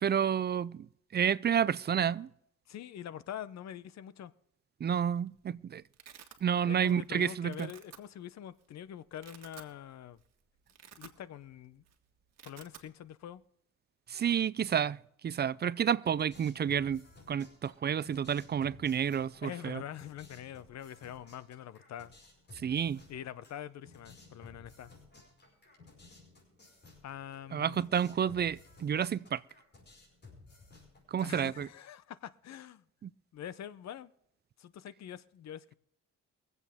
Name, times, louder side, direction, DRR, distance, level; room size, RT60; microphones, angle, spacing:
voice 1, 0.0-0.9 1.1-2.3 4.8-5.8 6.4-7.7 14.1-17.0 17.3-19.8 22.6-23.0 27.5-29.4 31.1-31.7 33.0-33.1, right 8 dB, 35° right, 0.4 m, -30 dB
voice 2, 2.7-4.3 6.6-10.2 11.0-11.8 12.4-13.4 19.4-22.1 23.1-24.9 27.0-27.8 31.2-32.8 33.3-34.1 34.6-35.7, left 10 dB, 60° left, 0.8 m, -44 dB
Domestic sounds home sounds, 5.2-5.3 5.5-6.4 6.9-7.1 7.4-8.0 8.6-8.7 9.1-9.7 10.1-10.3 10.6-11.5 11.8-11.9 12.2-12.9, right 9 dB, 60° right, 1.7 m, -53 dB
sound 1, 16.2-31.6, left 3 dB, 35° left, 5.5 m, -57 dB
23.5 x 8.1 x 3.6 m
cardioid pair, 90°, 30 cm